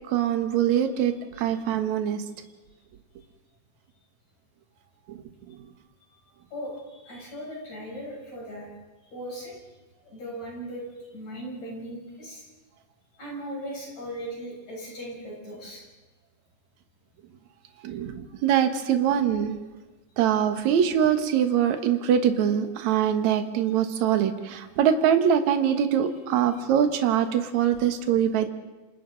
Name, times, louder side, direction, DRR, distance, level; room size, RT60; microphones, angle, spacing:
voice 1, 0.1-2.2 5.1-5.2 17.8-19.6 20.2-28.5, right 9 dB, 65° right, 7 dB, 2.5 m, -23 dB
voice 2, 6.5-8.7 9.1-9.5 10.1-12.5 13.2-15.9, equal, 60° left, -3 dB, 8.6 m, -38 dB
28.0 x 27.5 x 4.0 m, 1.2 s
omnidirectional pair, 3.7 m